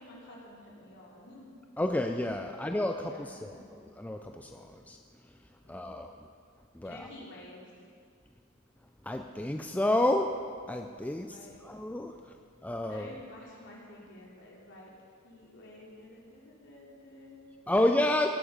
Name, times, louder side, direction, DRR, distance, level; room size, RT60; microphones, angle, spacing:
voice 1, 0.0-1.5 2.5-3.7 5.6-5.9 6.8-7.7 11.3-11.6 12.9-14.9 15.2-17.6 18.1-18.3, left 1 dB, 60° left, -4 dB, 3.2 m, -51 dB
voice 2, 1.8-5.0 5.2-6.3 6.7-7.1 9.0-10.4 10.7-12.4 12.6-13.1 17.7-18.3, left 1 dB, 5° left, 4 dB, 0.4 m, -30 dB
17.5 x 8.9 x 5.2 m, 2.1 s
head